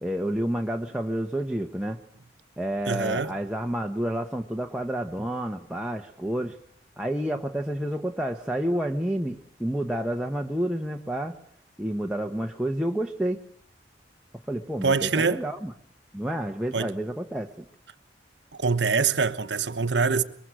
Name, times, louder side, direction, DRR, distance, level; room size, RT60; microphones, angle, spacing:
voice 1, 0.0-2.0 2.6-6.6 7.0-11.3 11.8-13.4 14.5-15.7 16.1-17.7, right 1 dB, 5° right, 1.1 m, -29 dB
voice 2, 2.9-3.3 14.8-15.4 16.7-16.9 18.5-20.2, right 5 dB, 80° right, 1.2 m, -24 dB
23.0 x 23.0 x 6.2 m
head